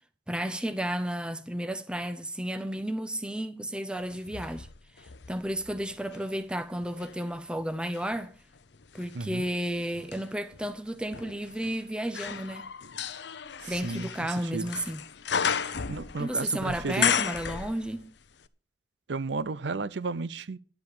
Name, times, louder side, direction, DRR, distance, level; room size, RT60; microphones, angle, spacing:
voice 1, 0.3-4.7 5.0-8.3 8.9-12.7 13.7-15.0 16.2-18.1, right 1 dB, 5° right, 0.7 m, -32 dB
sound 1, 4.1-6.3 6.8-18.2 18.4-18.5, left 7 dB, 65° left, 0.7 m, -34 dB
voice 2, 9.1-9.4 13.6-14.7 15.7-17.1 19.1-20.6, right 3 dB, 70° right, 0.6 m, -33 dB
11.5 x 8.2 x 6.6 m
head